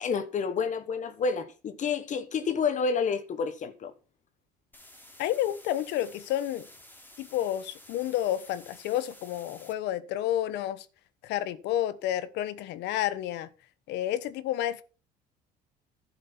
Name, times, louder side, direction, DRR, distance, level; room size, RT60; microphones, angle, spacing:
voice 1, 0.0-3.9, left 5 dB, 45° left, 1.3 m, -29 dB
sound 1, 4.7-9.7, left 1 dB, 10° left, 2.9 m, -52 dB
voice 2, 5.2-6.7 7.2-10.8 11.2-13.5 13.9-14.8, left 12 dB, 75° left, 1.1 m, -30 dB
11.0 x 7.6 x 5.6 m
supercardioid pair, 100°, 18 cm